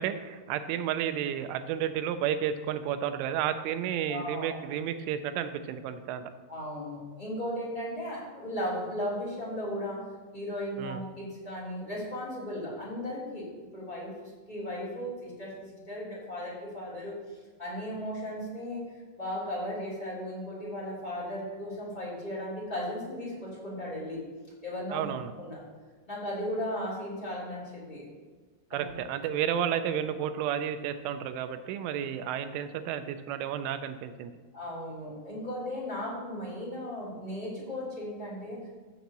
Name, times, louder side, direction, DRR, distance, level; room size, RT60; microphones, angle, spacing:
voice 1, 0.0-6.3 10.8-11.0 24.9-25.3 28.7-34.4, right 9 dB, 90° right, 10 dB, 3.1 m, -32 dB
voice 2, 4.1-4.6 6.5-10.0 10.3-13.5 13.7-15.5 15.9-18.8 19.2-24.2 24.6-25.1 25.4-25.6 26.1-28.1 28.7-28.9 34.5-38.7, left 1 dB, 10° left, -8 dB, 2.6 m, -36 dB
14.5 x 7.2 x 3.0 m, 1.4 s
omnidirectional pair, 5.4 m